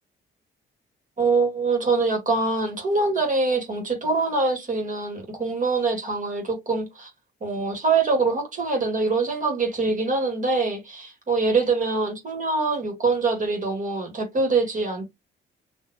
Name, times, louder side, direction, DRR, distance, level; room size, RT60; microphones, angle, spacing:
voice 1, 1.2-7.1 7.4-15.1, right 3 dB, 40° right, 1.9 m, -24 dB
4.3 x 2.9 x 2.8 m
cardioid pair, 90°, 20 cm